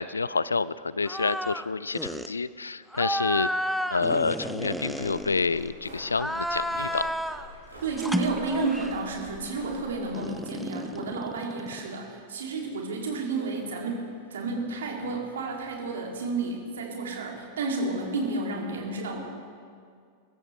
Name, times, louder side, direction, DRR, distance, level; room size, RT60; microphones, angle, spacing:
voice 1, 0.0-3.5 3.9-7.1, left 4 dB, 75° left, 18 dB, 0.3 m, -28 dB
sound 1, 1.0-1.7 1.9-2.3 2.9-5.7 6.1-7.5 8.0-9.1 10.1-11.9, equal, ahead, 0.5 m, -32 dB
sound 2, 4.9-10.1, left 1 dB, 85° right, 3.8 m, -46 dB
voice 2, 7.8-19.2, right 3 dB, 65° right, 0 dB, 2.5 m, -31 dB
22.0 x 13.5 x 3.2 m, 2.2 s
figure-of-eight pair, 90°, 0 cm